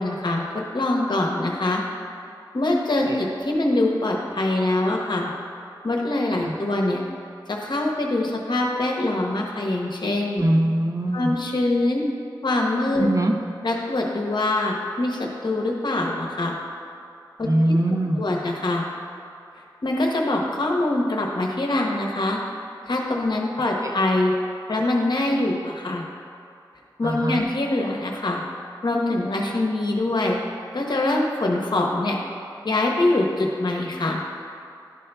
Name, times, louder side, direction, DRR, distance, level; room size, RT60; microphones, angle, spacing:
voice 1, 0.0-1.8 2.5-5.3 5.8-7.0 7.5-10.4 11.1-12.0 12.4-13.1 13.6-16.6 17.4-17.8 18.2-18.9 19.8-22.4 22.9-24.3 24.7-26.0 27.0-28.4 28.8-30.4 30.7-32.2 32.6-34.2, left 2 dB, 65° left, 0 dB, 0.9 m, -24 dB
voice 2, 10.4-11.3 13.0-13.3 17.5-18.2 23.8-23.9 27.0-27.4, right 1 dB, 45° right, 2 dB, 0.6 m, -22 dB
11.0 x 5.5 x 2.2 m, 2.5 s
wide cardioid pair, 80°, 8 cm